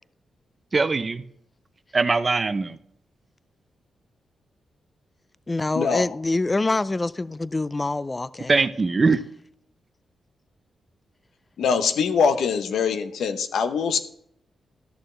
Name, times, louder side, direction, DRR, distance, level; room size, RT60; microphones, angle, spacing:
voice 1, 0.7-1.2 1.9-2.8 8.5-9.2, right 4 dB, 35° right, 0.6 m, -21 dB
voice 2, 5.5-8.6, left 2 dB, 25° left, 0.3 m, -25 dB
voice 3, 11.6-14.0, left 6 dB, 85° left, 0.7 m, -23 dB
12.5 x 6.6 x 3.2 m
cardioid pair, 80°, 0 cm